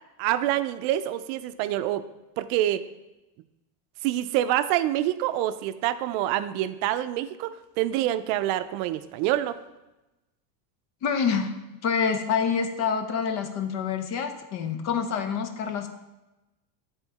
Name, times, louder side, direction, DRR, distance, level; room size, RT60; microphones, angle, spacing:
voice 1, 0.2-2.1 2.4-2.9 4.0-9.6, right 13 dB, 75° right, 12 dB, 0.5 m, -26 dB
voice 2, 11.0-11.5 11.8-15.9, left 6 dB, 35° left, 7 dB, 0.5 m, -27 dB
9.1 x 3.8 x 4.0 m, 1.0 s
cardioid pair, 165°, 46 cm